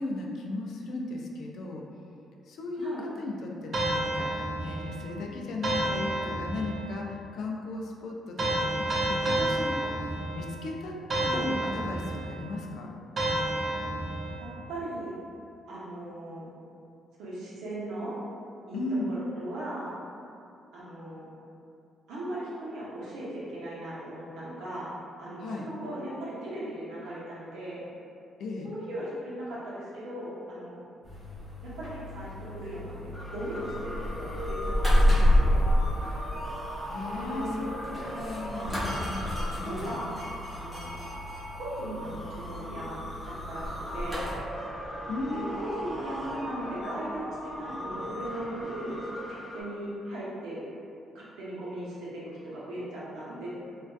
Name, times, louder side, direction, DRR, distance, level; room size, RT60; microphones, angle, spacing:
voice 1, 0.0-1.8 2.5-2.9 3.2-12.9 18.7-19.1 25.4-25.6 28.4-28.7 36.9-37.7 38.0-40.0 45.1-45.7, left 2 dB, 70° left, 0 dB, 0.3 m, -36 dB
sound 1, 3.7-5.0 5.6-6.9 8.4-10.6 11.1-12.4 13.2-14.5, right 1 dB, 45° right, 0.4 m, -30 dB
voice 2, 14.4-15.1 15.7-16.5 17.2-18.2 18.7-18.8 19.1-19.9 20.7-21.3 22.1-24.9 25.2-27.8 28.6-30.8 31.6-35.7 37.2-37.7 39.6-40.2 40.5-41.0 41.6-43.0 43.3-44.3 45.3-45.4 45.8-50.6 51.1-53.5, right 1 dB, 85° right, -8 dB, 0.7 m, -38 dB
sound 2, 31.0-44.3, left 1 dB, 5° right, 1.0 m, -30 dB
sound 3, 33.1-49.6, equal, 10° left, 0.5 m, -38 dB
2.5 x 2.2 x 2.2 m, 2.5 s
cardioid pair, 90°, 0 cm